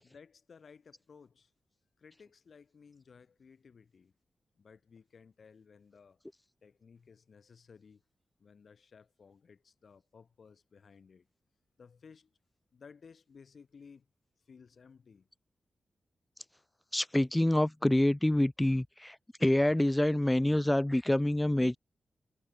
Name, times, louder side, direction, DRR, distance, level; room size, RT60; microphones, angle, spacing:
voice 1, 0.0-1.5 2.0-4.1 4.6-6.2 6.6-8.0 8.4-11.3 11.8-12.4 12.7-14.1 14.4-15.3, left 5 dB, 60° left, 3.8 m, -57 dB
voice 2, 16.9-19.2 19.4-21.8, left 1 dB, 10° left, 0.4 m, -26 dB
cardioid pair, 85°, 0 cm